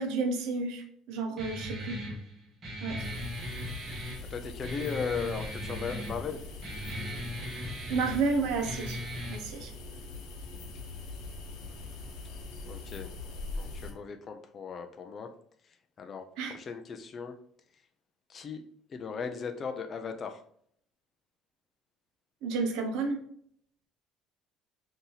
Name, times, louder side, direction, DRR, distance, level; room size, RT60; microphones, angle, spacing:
voice 1, 0.0-2.0 2.8-3.0 7.9-9.0 9.3-9.7 16.4-16.5 22.4-23.2, right 4 dB, 70° right, 4 dB, 0.7 m, -31 dB
Guitar, 1.4-9.4, equal, 20° right, 1.0 m, -38 dB
sound 1, 3.0-13.9, left 3 dB, 75° left, 0.8 m, -42 dB
voice 2, 4.3-6.4 12.7-13.1 13.5-15.3 15.6-16.2 16.5-17.4 18.3-18.6 18.9-20.4, left 6 dB, 30° left, 6 dB, 0.3 m, -37 dB
3.9 x 2.7 x 2.8 m, 0.64 s
cardioid pair, 175°, 0 cm